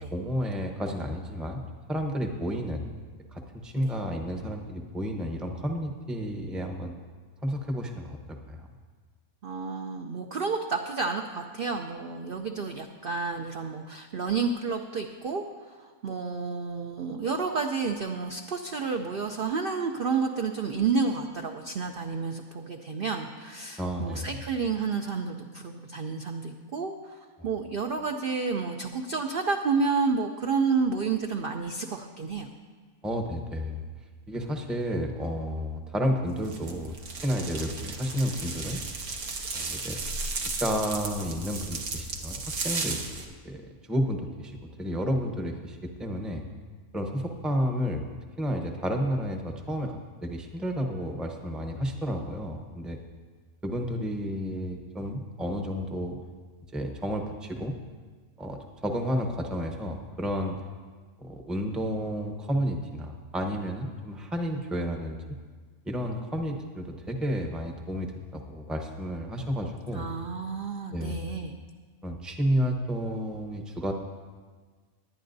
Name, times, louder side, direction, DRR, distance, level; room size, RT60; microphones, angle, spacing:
voice 1, 0.0-1.6 1.9-2.9 3.3-6.9 7.4-8.2 8.5-8.7 23.8-24.4 27.4-27.5 33.0-33.9 34.3-36.9 37.2-38.8 39.5-40.0 40.6-46.4 46.9-48.1 48.4-53.0 53.6-56.2 56.7-57.8 58.4-60.6 61.2-65.2 65.8-70.1 70.9-71.2 72.0-73.9, equal, ahead, 3 dB, 0.6 m, -31 dB
voice 2, 9.4-15.4 15.8-32.5 69.9-71.5, right 4 dB, 55° right, 4 dB, 0.6 m, -30 dB
sound 1, 36.4-43.3, right 4 dB, 85° right, 1.6 m, -35 dB
19.0 x 11.0 x 2.7 m, 1.5 s
omnidirectional pair, 1.5 m